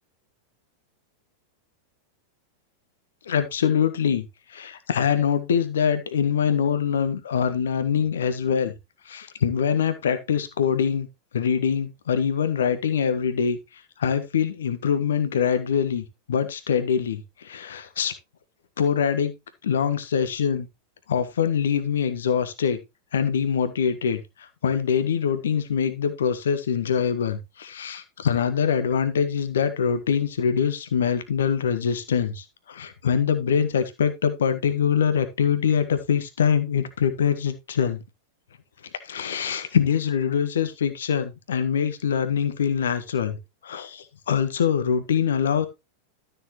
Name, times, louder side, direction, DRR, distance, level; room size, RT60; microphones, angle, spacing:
voice 1, 3.3-8.7 9.0-11.1 11.3-13.6 14.0-18.1 18.8-19.3 19.6-20.7 21.1-22.8 23.1-38.0 39.0-43.4 43.6-45.7, left 7 dB, 65° left, 10 dB, 1.5 m, -24 dB
13.0 x 6.9 x 3.0 m, 0.22 s
figure-of-eight pair, 90°, 0 cm